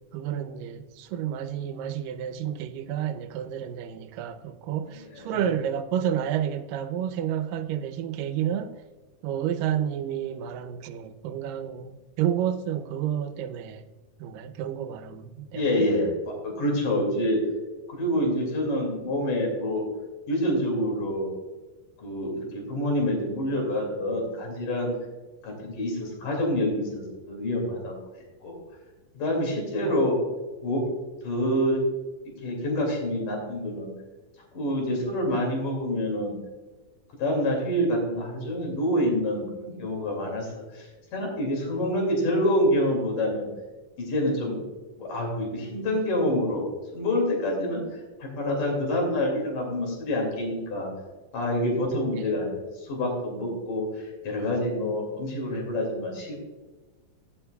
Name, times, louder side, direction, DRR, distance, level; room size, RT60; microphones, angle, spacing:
voice 1, 0.1-8.8 9.2-13.8 14.2-15.9 29.8-30.0 52.1-52.3, right 10 dB, 85° right, 2.3 m, -30 dB
voice 2, 5.0-5.5 15.5-17.4 17.9-19.9 20.3-21.3 22.0-24.9 25.4-28.0 28.4-28.5 29.2-30.2 30.6-30.8 31.2-31.8 32.4-33.9 34.5-36.4 37.2-43.5 44.0-44.6 45.0-46.6 46.9-50.9 51.3-56.3, left 1 dB, 70° left, 3.9 m, -27 dB
15.5 x 7.7 x 2.3 m
omnidirectional pair, 3.9 m